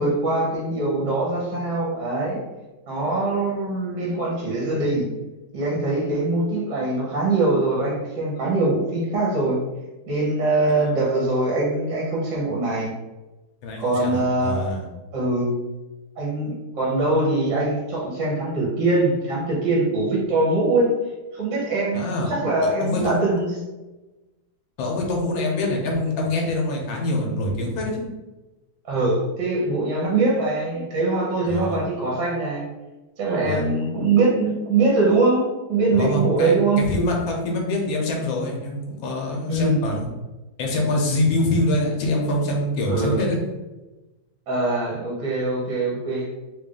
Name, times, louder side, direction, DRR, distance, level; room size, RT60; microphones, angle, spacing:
voice 1, 0.0-2.4 2.9-5.1 5.5-9.6 10.1-12.9 13.8-14.6 15.1-15.5 16.2-20.9 21.3-23.5 28.8-32.7 33.2-36.8 39.5-39.8 42.9-43.2 44.5-46.3, right 2 dB, 70° right, -4 dB, 1.5 m, -22 dB
voice 2, 13.6-14.8 21.9-22.3 22.6-23.2 24.8-28.1 31.5-31.8 33.4-33.6 35.9-40.0 40.6-43.4, left 1 dB, 85° left, 0 dB, 1.6 m, -25 dB
3.6 x 2.5 x 3.6 m, 1.1 s
omnidirectional pair, 2.1 m